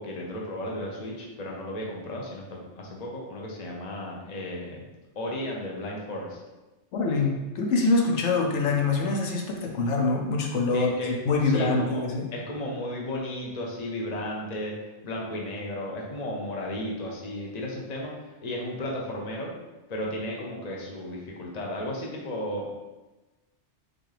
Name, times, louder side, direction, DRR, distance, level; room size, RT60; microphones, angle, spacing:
voice 1, 0.0-4.8 5.2-6.4 10.7-11.2 11.4-12.0 12.3-14.7 15.0-19.5 19.9-22.7, left 1 dB, 40° left, -2 dB, 0.9 m, -34 dB
voice 2, 6.9-10.9 11.3-12.3, left 3 dB, 80° left, 0 dB, 1.0 m, -24 dB
6.0 x 2.6 x 3.3 m, 1.1 s
omnidirectional pair, 1.2 m